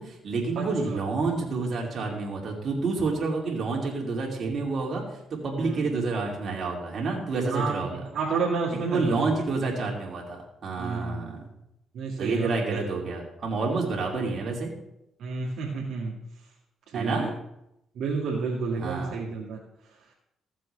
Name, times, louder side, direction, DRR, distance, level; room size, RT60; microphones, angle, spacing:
voice 1, 0.0-5.0 5.3-8.0 8.7-11.5 12.2-14.7 16.9-17.3 18.8-19.1, right 3 dB, 50° right, -1 dB, 2.8 m, -29 dB
voice 2, 0.6-1.0 3.7-3.8 5.6-6.1 7.5-7.8 8.1-9.3 10.8-11.4 11.9-12.8 15.2-16.2 16.9-17.3 18.0-19.6, right 4 dB, 70° right, -5 dB, 2.0 m, -30 dB
14.5 x 7.6 x 3.4 m, 0.82 s
cardioid pair, 90°, 0 cm